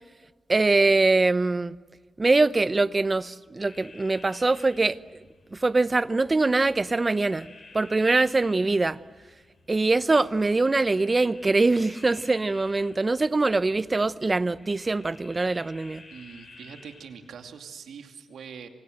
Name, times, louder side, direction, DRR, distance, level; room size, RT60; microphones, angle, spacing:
voice 1, 0.5-1.7 2.2-5.2 5.5-7.5 7.7-9.0 9.7-16.0, right 3 dB, 30° right, 0.8 m, -23 dB
sound 1, 3.6-17.5, left 3 dB, 45° left, 6.9 m, -52 dB
voice 2, 16.1-18.7, right 6 dB, 90° right, 2.5 m, -43 dB
28.0 x 25.0 x 7.9 m
cardioid pair, 90°, 0 cm